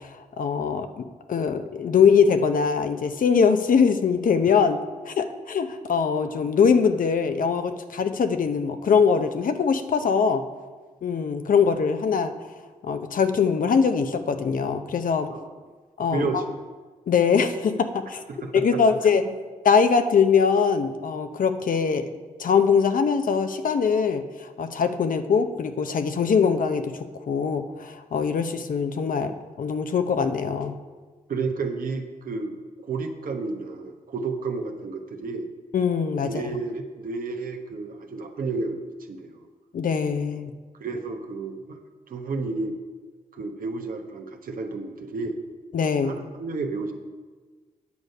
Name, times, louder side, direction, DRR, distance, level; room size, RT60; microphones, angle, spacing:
voice 1, 0.0-10.4 11.0-12.3 12.8-15.3 16.0-16.4 17.1-18.2 18.5-19.2 19.6-22.1 22.4-30.7 35.7-36.4 39.7-40.5 45.7-46.2, left 6 dB, 65° left, 8 dB, 0.7 m, -22 dB
voice 2, 16.1-16.4 18.3-18.8 31.3-35.5 36.2-38.8 39.1-39.4 40.8-41.8 42.1-42.8 43.3-45.4 46.0-46.9, right 3 dB, 70° right, 4 dB, 1.1 m, -31 dB
9.6 x 6.5 x 5.4 m, 1.4 s
cardioid pair, 50°, 15 cm